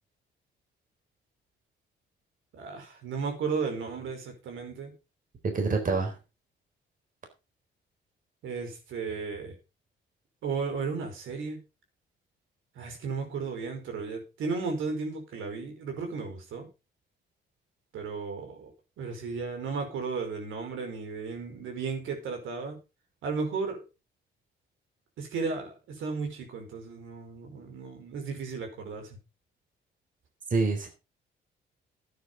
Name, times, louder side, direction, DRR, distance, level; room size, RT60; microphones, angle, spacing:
voice 1, 2.5-4.9 8.4-9.5 10.4-11.6 12.7-16.7 17.9-22.8 23.2-23.8 25.2-29.2, right 4 dB, 80° right, 4 dB, 5.1 m, -34 dB
voice 2, 5.5-6.2 30.5-30.9, right 3 dB, 45° right, 4 dB, 4.1 m, -26 dB
11.5 x 9.5 x 5.1 m, 0.29 s
cardioid pair, 90°, 20 cm